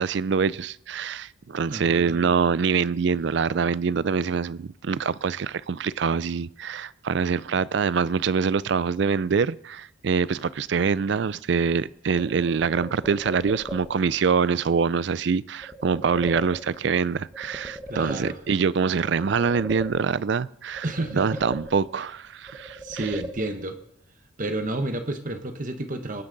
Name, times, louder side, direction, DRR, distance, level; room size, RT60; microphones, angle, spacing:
voice 1, 0.0-20.9 21.1-23.1, right 5 dB, 60° right, 0.4 m, -25 dB
voice 2, 1.7-2.4 17.9-18.4 20.8-21.4 22.8-23.8 24.4-26.2, right 2 dB, 40° right, 1.0 m, -31 dB
sound 1, 12.2-14.2 15.6-17.0 17.3-18.7 19.0-20.4 20.8-22.1 22.5-23.8, equal, 10° right, 1.1 m, -39 dB
20.5 x 9.7 x 4.0 m
head